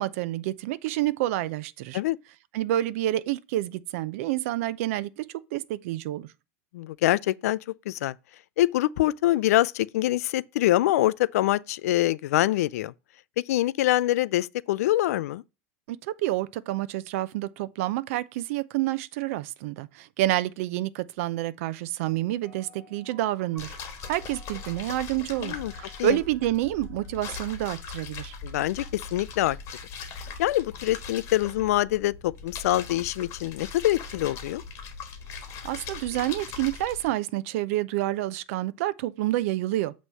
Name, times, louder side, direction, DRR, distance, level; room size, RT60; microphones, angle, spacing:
voice 1, 0.0-2.0 2.5-5.2 5.5-6.3 15.9-23.8 24.1-28.3 35.4-39.9, right 15 dB, 65° right, 0.6 m, -28 dB
voice 2, 6.7-7.6 7.9-8.2 8.6-12.9 13.4-15.4 25.4-25.7 26.0-26.2 28.4-29.6 30.2-34.6, left 15 dB, 90° left, 0.4 m, -25 dB
sound 1, 22.4-28.2, right 2 dB, 10° right, 1.2 m, -54 dB
sound 2, 23.6-37.1, left 5 dB, 35° left, 1.4 m, -40 dB
8.0 x 3.1 x 5.5 m
supercardioid pair, 150°, 8 cm